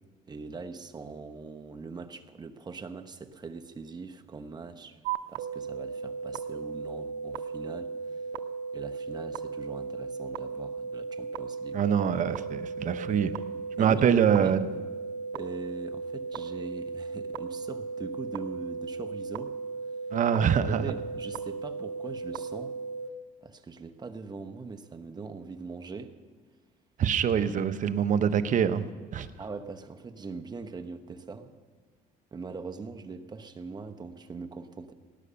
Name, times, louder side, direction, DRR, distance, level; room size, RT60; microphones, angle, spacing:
voice 1, 0.3-5.0 5.3-8.2 8.7-11.8 13.8-14.6 15.3-19.6 20.7-22.8 23.4-26.2 29.4-31.5 32.3-34.9, right 4 dB, 25° right, 6 dB, 1.0 m, -41 dB
sound 1, 5.0-23.1, right 4 dB, 90° right, 0.6 m, -36 dB
voice 2, 11.7-13.3 13.8-14.7 20.1-20.8 27.0-28.8 29.1-29.3, right 8 dB, 50° right, 10 dB, 0.9 m, -24 dB
18.0 x 9.7 x 6.9 m, 1.5 s
cardioid pair, 110°, 17 cm